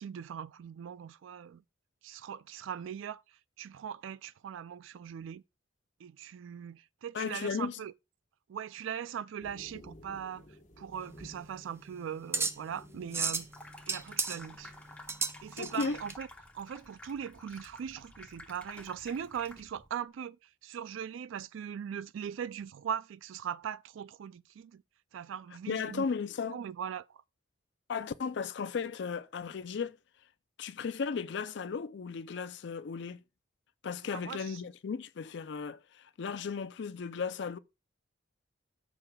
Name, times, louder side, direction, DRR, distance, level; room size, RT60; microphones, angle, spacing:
voice 1, 0.0-1.6 2.0-5.4 6.0-7.9 8.5-10.4 10.8-13.5 13.9-14.7 15.4-16.3 16.5-24.8 25.1-26.0 26.5-27.2 34.1-34.6, right 8 dB, 80° right, 0.3 m, -40 dB
voice 2, 7.1-7.8 15.6-16.0 25.7-26.6 27.9-30.0 30.6-33.2 33.8-37.6, left 5 dB, 60° left, 0.4 m, -35 dB
sound 1, 9.4-15.0, left 1 dB, 40° left, 1.2 m, -56 dB
sound 2, 11.0-16.1, right 4 dB, 15° right, 0.4 m, -35 dB
Water tap faucet / Sink (filling or washing), 13.4-19.9, left 1 dB, 5° left, 0.8 m, -52 dB
13.5 x 6.1 x 2.3 m
head